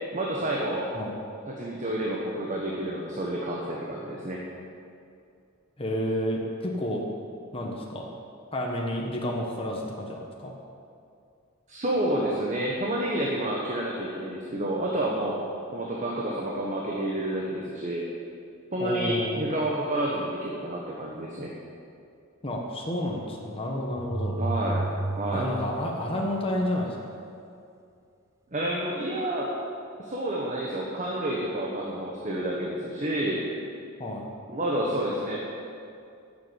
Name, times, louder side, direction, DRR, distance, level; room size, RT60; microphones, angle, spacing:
voice 1, 0.1-0.9 1.5-4.4 11.7-15.4 15.7-18.1 18.7-21.5 24.4-24.8 25.1-25.5 28.5-29.5 30.0-33.4 34.5-35.4, right 1 dB, 35° right, -3 dB, 1.3 m, -29 dB
voice 2, 5.8-7.1 7.5-8.1 8.5-10.5 18.8-19.5 22.4-24.3 25.3-27.0 34.0-34.3, left 1 dB, 25° left, -1 dB, 1.3 m, -30 dB
sound 1, 24.0-26.8, right 2 dB, 15° right, 0.5 m, -32 dB
12.0 x 7.4 x 8.0 m, 2.5 s
head